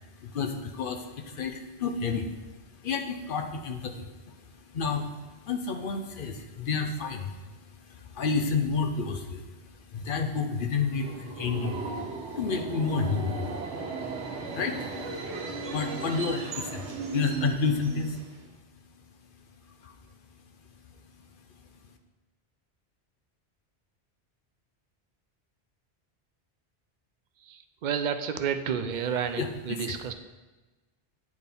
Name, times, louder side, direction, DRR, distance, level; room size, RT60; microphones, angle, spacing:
voice 1, 0.0-13.5 14.5-15.2 15.7-16.9 17.1-18.2 19.8-19.9 29.4-29.5, left 5 dB, 55° left, 5 dB, 0.7 m, -31 dB
Subway metro underground, 10.7-18.5, right 4 dB, 90° right, 1.2 m, -36 dB
voice 2, 27.4-30.1, right 7 dB, 55° right, 8 dB, 0.5 m, -31 dB
9.5 x 4.2 x 3.5 m, 1.2 s
omnidirectional pair, 1.1 m